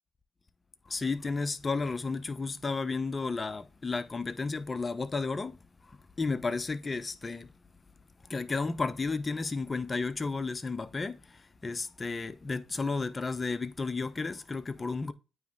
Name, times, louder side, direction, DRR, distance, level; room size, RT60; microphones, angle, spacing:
voice 1, 0.9-7.5 8.2-15.1, left 4 dB, 30° left, 0.7 m, -33 dB
9.1 x 3.2 x 3.4 m
supercardioid pair, 60°, 0 cm